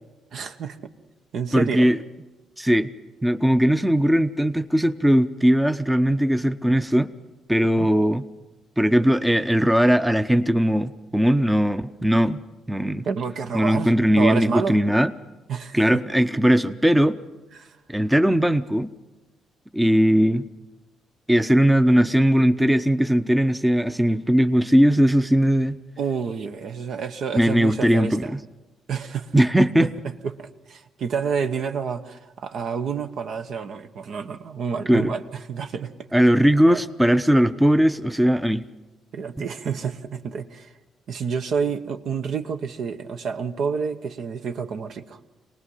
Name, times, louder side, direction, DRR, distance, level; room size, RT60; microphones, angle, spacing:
voice 1, 0.3-0.8 1.3-1.9 7.8-8.0 13.1-14.8 15.5-16.0 17.5-17.8 26.0-28.3 28.9-29.4 29.8-29.9 30.2-35.9 36.6-36.9 39.1-40.7 41.1-45.3, right 6 dB, 65° right, 8 dB, 1.1 m, -29 dB
voice 2, 1.5-2.0 2.6-2.9 3.2-7.1 7.5-8.2 8.8-12.4 12.7-13.0 13.5-15.1 15.7-17.2 17.9-18.9 19.7-20.5 21.3-25.8 27.3-28.4 29.3-29.9 34.9-35.1 36.1-38.6, equal, 5° right, 10 dB, 0.7 m, -19 dB
24.0 x 19.0 x 5.7 m, 1.1 s
cardioid pair, 90°, 0 cm